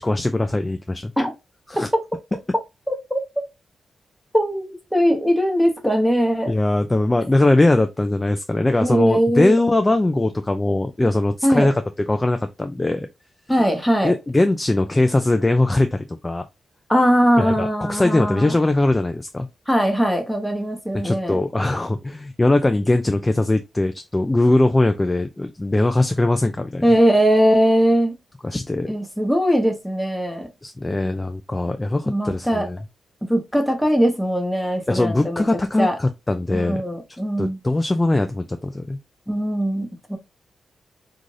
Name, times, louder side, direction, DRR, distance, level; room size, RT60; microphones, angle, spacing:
voice 1, 0.0-1.1 1.7-1.9 6.5-11.8 12.1-13.1 14.0-16.4 17.4-19.5 20.9-26.8 28.4-28.9 30.6-32.8 34.9-36.8 37.4-39.0, left 2 dB, 20° left, 0.3 m, -20 dB
voice 2, 2.9-3.2 4.3-6.5 8.8-9.5 11.4-11.7 13.5-14.1 16.9-18.5 19.7-21.4 26.8-28.1 28.9-30.5 32.1-32.7 33.3-35.5 35.8-36.0 36.5-37.6 39.3-40.2, equal, 5° left, 1.0 m, -20 dB
2.6 x 2.4 x 3.1 m
cardioid pair, 70°, 0 cm